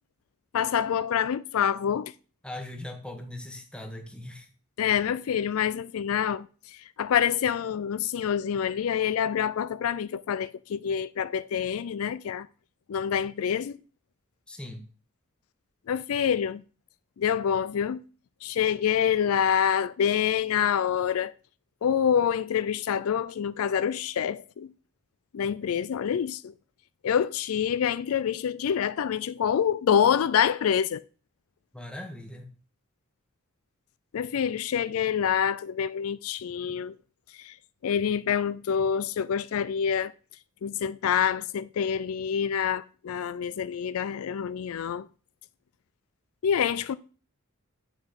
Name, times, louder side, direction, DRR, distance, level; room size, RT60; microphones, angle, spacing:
voice 1, 0.5-2.1 4.8-6.5 7.0-12.5 12.9-13.7 15.9-16.6 17.2-18.0 18.4-21.3 21.8-24.7 25.3-26.5 27.0-31.0 34.1-36.9 37.4-37.5 37.8-40.1 40.6-45.1 46.4-47.0, left 8 dB, 75° left, 0.4 m, -26 dB
voice 2, 2.4-4.5 14.5-14.9 31.7-32.5, left 1 dB, 5° left, 1.2 m, -40 dB
7.9 x 4.9 x 5.1 m
head